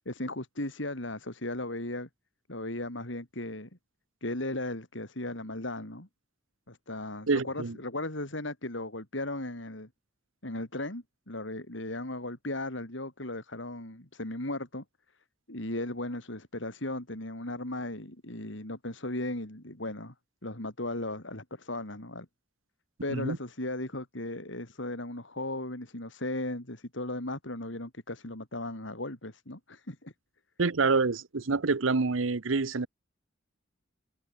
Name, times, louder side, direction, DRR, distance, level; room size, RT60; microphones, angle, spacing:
voice 1, 0.1-2.1 2.5-3.7 4.2-6.1 6.7-9.9 10.4-14.8 15.5-20.1 20.4-22.3 23.0-30.1, left 1 dB, 65° left, 4.2 m, -36 dB
voice 2, 7.3-7.8 23.1-23.4 30.6-32.9, right 4 dB, 85° right, 0.9 m, -27 dB
head